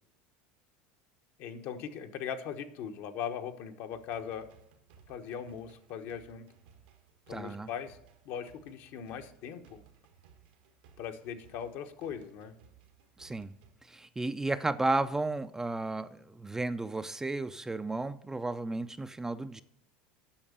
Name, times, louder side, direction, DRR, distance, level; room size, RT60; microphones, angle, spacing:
voice 1, 1.4-4.5 5.1-6.4 7.3-8.0 8.2-9.8 11.0-12.5, left 8 dB, 60° left, 1.1 m, -39 dB
sound 1, 3.9-13.7, right 7 dB, 85° right, 1.5 m, -61 dB
voice 2, 7.3-7.7 13.2-13.6 13.9-19.6, right 2 dB, 10° right, 0.4 m, -33 dB
8.7 x 6.4 x 6.7 m
supercardioid pair, 100°, 4 cm